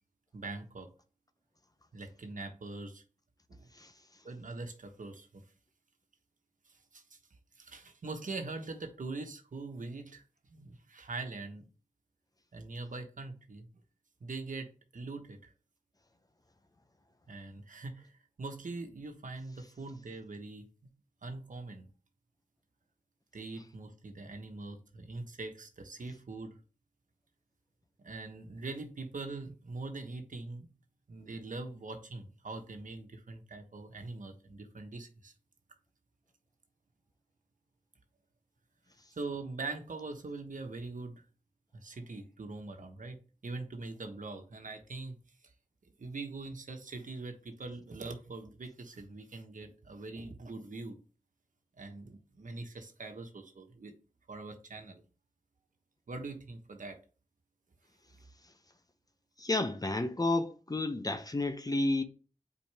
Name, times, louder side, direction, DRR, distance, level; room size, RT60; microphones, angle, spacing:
voice 1, 0.3-0.9 1.9-3.0 4.2-5.4 6.9-7.0 7.6-10.2 10.5-11.7 12.5-13.7 14.2-15.5 17.3-18.1 18.4-20.7 21.2-21.9 23.3-26.5 28.0-30.7 31.1-35.3 39.1-41.1 41.8-43.2 43.4-45.2 46.0-51.0 51.8-53.9 54.3-55.0 56.1-57.0, right 3 dB, 70° right, 1.3 m, -42 dB
voice 2, 59.4-62.0, left 2 dB, 25° left, 0.8 m, -31 dB
8.5 x 4.6 x 3.5 m
wide cardioid pair, 80°, 14 cm